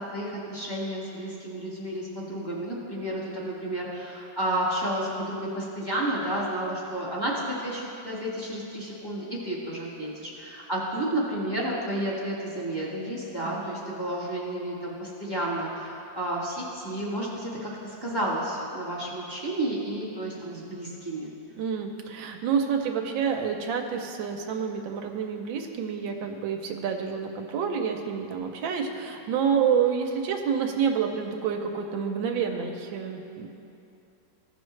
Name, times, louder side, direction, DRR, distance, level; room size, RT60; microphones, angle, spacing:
voice 1, 0.0-21.3, right 1 dB, 15° left, -5 dB, 1.5 m, -31 dB
voice 2, 13.4-13.9 21.6-33.5, right 7 dB, 90° right, 3 dB, 1.4 m, -28 dB
15.5 x 6.0 x 3.2 m, 2.8 s
omnidirectional pair, 2.0 m